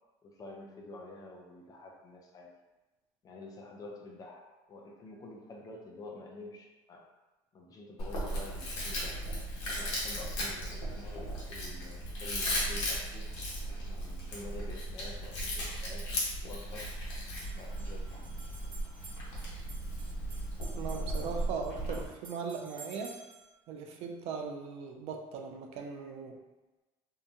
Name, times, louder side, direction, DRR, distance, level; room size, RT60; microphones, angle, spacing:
voice 1, 0.2-2.5 3.2-7.1 7.5-9.3 9.7-13.3 13.9-16.9 17.5-18.2, left 2 dB, 30° left, 0 dB, 0.5 m, -48 dB
Chewing mastication, 8.0-22.1, equal, 70° left, 1.0 m, -36 dB
sound 1, 17.4-23.5, right 3 dB, 45° right, 1.1 m, -53 dB
voice 2, 20.7-23.2 23.7-26.4, right 5 dB, 60° right, 3 dB, 0.4 m, -39 dB
2.7 x 2.2 x 2.6 m, 1.1 s
cardioid pair, 120°, 12 cm